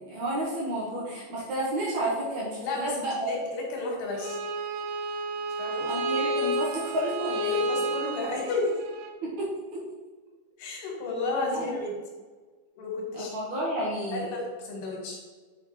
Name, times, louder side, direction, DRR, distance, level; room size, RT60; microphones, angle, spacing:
voice 1, 0.0-3.4 5.8-7.7 9.2-9.8 11.5-11.7 13.1-14.3, right 1 dB, 60° right, -5 dB, 2.2 m, -31 dB
voice 2, 2.6-4.4 5.6-5.9 7.5-8.8 10.6-11.9 12.8-13.4 14.1-15.2, left 3 dB, 90° left, -1 dB, 3.5 m, -32 dB
Bowed string instrument, 4.1-9.1, right 1 dB, 80° right, 2.5 m, -31 dB
9.0 x 4.7 x 3.2 m, 1.4 s
omnidirectional pair, 4.4 m